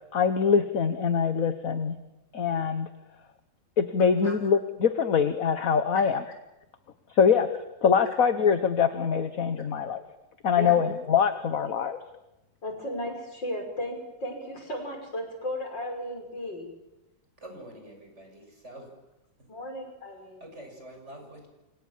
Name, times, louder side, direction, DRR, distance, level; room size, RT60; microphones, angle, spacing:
voice 1, 0.1-1.9 2.3-2.9 3.8-6.2 7.1-7.5 7.8-10.0 10.4-12.0, left 6 dB, 50° left, 10 dB, 1.6 m, -23 dB
voice 2, 12.6-16.7 19.5-20.4, left 1 dB, 75° left, 4 dB, 6.7 m, -35 dB
voice 3, 17.4-18.9 20.4-21.5, right 1 dB, 35° right, 3 dB, 7.2 m, -46 dB
29.5 x 25.5 x 7.5 m, 0.95 s
omnidirectional pair, 2.0 m